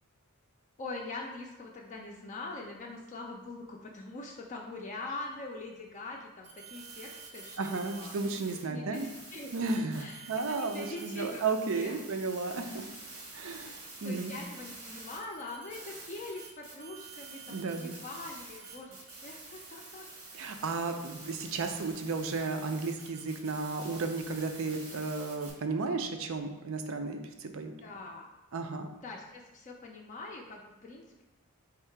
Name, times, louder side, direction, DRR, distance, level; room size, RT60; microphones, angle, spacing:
voice 1, 0.8-8.1 8.5-9.5 9.9-11.4 11.7-11.9 12.3-12.6 14.0-19.0 19.2-20.1 27.8-28.3 29.0-31.2, left 2 dB, 35° left, -1 dB, 0.4 m, -43 dB
sound 1, 6.4-8.6 8.9-25.5, right 3 dB, 85° right, 1.2 m, -48 dB
voice 2, 7.6-9.1 9.5-12.8 13.3-14.3 17.5-18.0 20.3-27.8 28.5-28.9, right 3 dB, 65° right, 6 dB, 0.5 m, -34 dB
3.6 x 2.8 x 4.5 m, 1.1 s
head